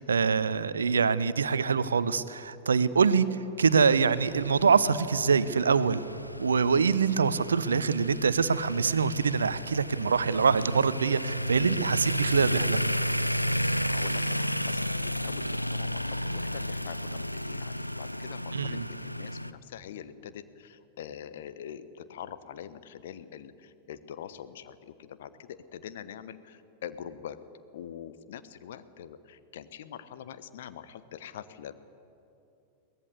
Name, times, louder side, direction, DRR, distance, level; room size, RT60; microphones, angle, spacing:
voice 1, 0.0-3.3 3.6-6.0 6.4-12.8 18.5-18.9, right 5 dB, 70° right, 16 dB, 0.8 m, -24 dB
sound 1, 3.7-19.5, equal, 90° left, 0.6 m, -32 dB
voice 2, 13.6-27.4 27.7-31.7, left 9 dB, 60° left, 13 dB, 1.1 m, -44 dB
23.0 x 18.5 x 8.3 m, 2.7 s
figure-of-eight pair, 90°, 0 cm